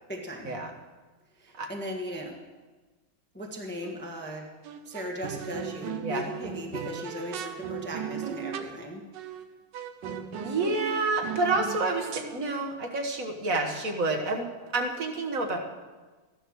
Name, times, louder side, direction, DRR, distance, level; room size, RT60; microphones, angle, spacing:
voice 1, 0.1-0.6 1.4-2.4 3.3-4.5 4.8-9.1, equal, 5° left, 0 dB, 1.2 m, -38 dB
sound 1, 3.8-4.2 4.6-8.8 9.1-9.5 9.7-12.4, right 8 dB, 65° right, 1.3 m, -37 dB
voice 2, 10.4-14.5 14.7-15.6, right 3 dB, 45° right, 4 dB, 1.5 m, -28 dB
14.0 x 11.5 x 6.3 m, 1.3 s
omnidirectional pair, 2.4 m